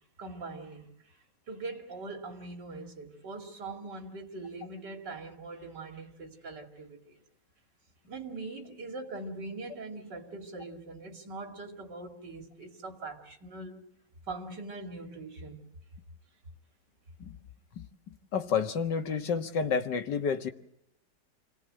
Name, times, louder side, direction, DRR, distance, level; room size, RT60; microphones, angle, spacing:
voice 1, 0.2-1.2 1.5-7.2 8.1-13.9 14.3-15.6, right 3 dB, 80° right, 3.2 m, -42 dB
voice 2, 17.7-20.5, left 6 dB, 80° left, 2.2 m, -30 dB
28.0 x 18.5 x 7.8 m
omnidirectional pair, 1.8 m